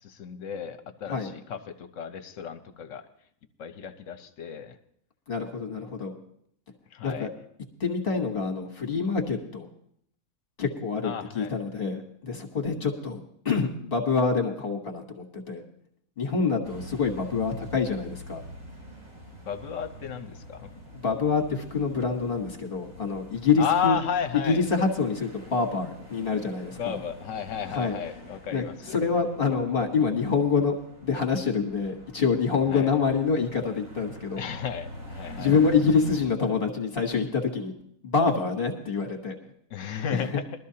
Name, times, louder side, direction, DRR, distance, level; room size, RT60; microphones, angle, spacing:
voice 1, 0.0-3.0 3.6-4.8 6.9-7.3 11.0-11.5 19.5-20.7 23.6-24.7 26.8-29.0 32.7-32.9 34.4-35.6 39.7-40.4, left 8 dB, 65° left, 9 dB, 1.2 m, -33 dB
voice 2, 5.3-6.1 7.0-7.3 7.8-9.7 10.6-13.2 13.4-15.6 16.2-18.4 20.9-23.9 24.4-27.0 27.7-27.9 28.5-30.7 31.0-34.4 35.4-37.7 38.0-39.4 39.8-40.4, left 5 dB, 40° left, 2 dB, 1.5 m, -26 dB
sound 1, 16.6-36.2, equal, 75° right, 4.9 m, -45 dB
21.5 x 12.5 x 2.8 m, 0.69 s
omnidirectional pair, 1.4 m